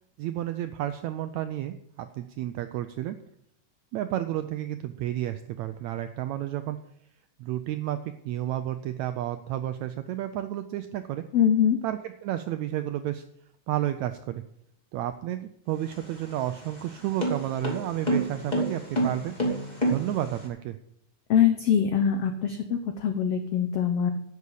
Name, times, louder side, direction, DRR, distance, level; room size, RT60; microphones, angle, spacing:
voice 1, 0.2-3.2 3.9-6.8 7.4-11.2 11.8-13.2 13.7-14.4 14.9-19.3 19.9-20.8, right 12 dB, 85° right, 10 dB, 1.6 m, -31 dB
voice 2, 11.3-11.8 21.3-24.1, left 8 dB, 85° left, 7 dB, 1.3 m, -23 dB
sound 1, 15.7-20.5, right 1 dB, 15° left, 2.3 m, -29 dB
11.0 x 6.9 x 8.4 m, 0.74 s
omnidirectional pair, 3.8 m